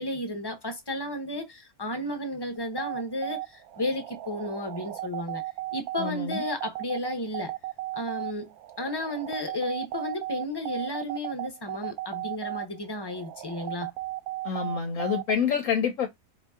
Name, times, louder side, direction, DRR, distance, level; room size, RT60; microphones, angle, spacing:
voice 1, 0.0-5.4 5.7-7.5 7.9-13.9, left 1 dB, 20° left, 0.7 m, -33 dB
sound 1, 2.6-15.3, right 16 dB, 75° right, 1.0 m, -35 dB
voice 2, 6.0-6.4 14.4-16.1, left 7 dB, 65° left, 1.0 m, -27 dB
4.8 x 2.7 x 3.5 m
omnidirectional pair, 1.6 m